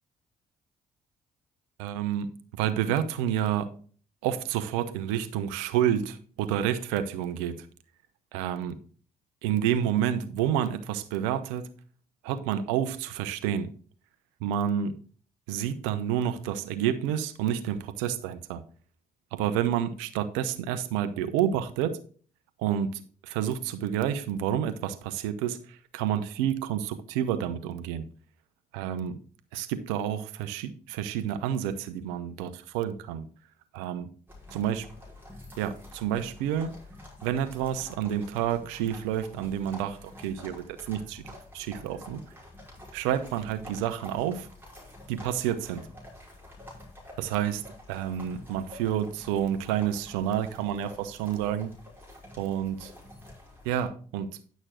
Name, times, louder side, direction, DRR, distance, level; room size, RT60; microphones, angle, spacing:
voice 1, 1.8-2.3 2.6-3.7 4.2-7.7 8.3-8.8 9.4-11.7 12.2-13.7 14.4-15.0 15.5-18.6 19.3-22.0 22.6-28.1 28.7-29.2 29.5-33.3 33.7-34.1 34.5-34.9 35.6-36.7 37.2-42.2 42.9-44.5 45.1-45.9 47.2-47.6 47.9-51.7 52.4-52.8 53.6-54.3, right 10 dB, 80° right, 0.9 m, -29 dB
sound 1, 34.3-53.9, left 1 dB, 10° right, 5.1 m, -48 dB
10.5 x 6.3 x 3.8 m
hypercardioid pair, 55°, 19 cm